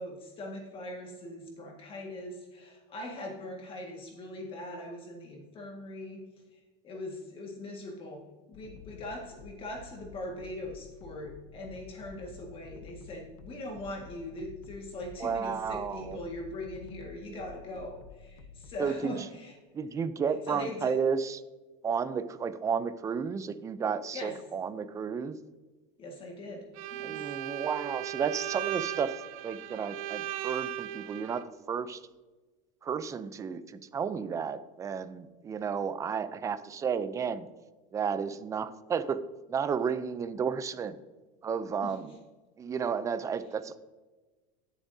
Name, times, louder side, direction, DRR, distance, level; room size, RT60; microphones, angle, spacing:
voice 1, 0.0-6.2 6.5-8.2 8.5-19.5 20.5-21.0 24.1-24.4 26.0-26.6 26.9-27.3 41.8-41.9, left 1 dB, 30° left, 0 dB, 1.8 m, -41 dB
sound 1, 8.5-18.8, left 6 dB, 80° left, 0.8 m, -51 dB
voice 2, 15.2-16.2 18.8-19.1 19.7-21.4 21.8-25.4 27.0-32.0 32.8-37.5 37.9-39.2 39.5-41.0 41.4-42.1 42.6-43.8, right 6 dB, 20° right, 13 dB, 0.5 m, -32 dB
Bowed string instrument, 26.7-31.5, right 13 dB, 90° right, 0.7 m, -37 dB
16.5 x 7.2 x 2.7 m, 1.2 s
supercardioid pair, 145°, 17 cm